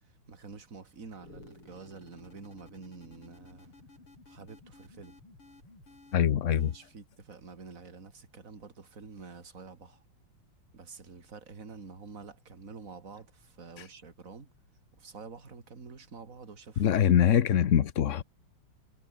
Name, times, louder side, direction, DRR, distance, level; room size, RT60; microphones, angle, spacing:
voice 1, 0.3-3.7 4.3-5.2 6.7-10.0 10.7-14.5 15.0-16.9 17.3-17.4, right 4 dB, 35° right, 3.0 m, -48 dB
sound 1, 1.2-7.0, left 2 dB, 80° left, 8.6 m, -55 dB
voice 2, 6.1-6.7 13.8-13.9 16.8-18.2, left 9 dB, 55° left, 0.8 m, -24 dB
omnidirectional pair, 2.4 m